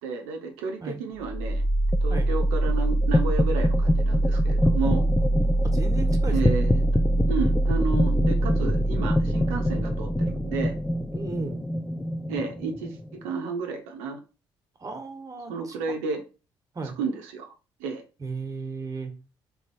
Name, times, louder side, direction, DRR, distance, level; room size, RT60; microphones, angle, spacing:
voice 1, 0.0-1.6 2.0-5.1 6.3-6.8 7.3-10.7 12.3-14.2 15.5-16.2 16.8-17.5 17.8-18.0, right 4 dB, 80° right, 3 dB, 0.7 m, -32 dB
sound 1, 1.2-13.1, equal, 10° left, 0.3 m, -23 dB
voice 2, 5.6-6.6 11.1-11.6 14.8-15.8 16.7-17.0 18.2-19.1, right 4 dB, 30° right, 6 dB, 1.3 m, -35 dB
3.5 x 3.0 x 4.3 m, 0.32 s
hypercardioid pair, 55°, 11 cm